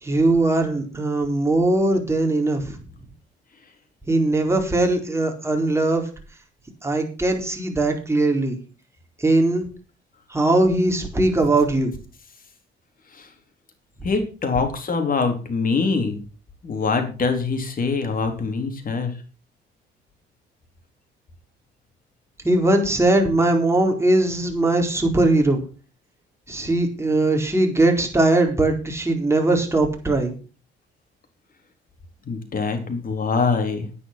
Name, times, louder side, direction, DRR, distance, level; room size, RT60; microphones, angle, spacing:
voice 1, 0.0-2.8 4.1-6.1 6.8-8.6 9.2-9.7 10.3-11.9 22.4-25.6 26.5-30.4, right 2 dB, 15° right, 2 dB, 4.3 m, -20 dB
voice 2, 14.0-16.2 16.6-19.1 32.3-33.9, left 4 dB, 45° left, 5 dB, 3.9 m, -24 dB
9.9 x 9.8 x 6.0 m, 0.35 s
cardioid pair, 90°, 20 cm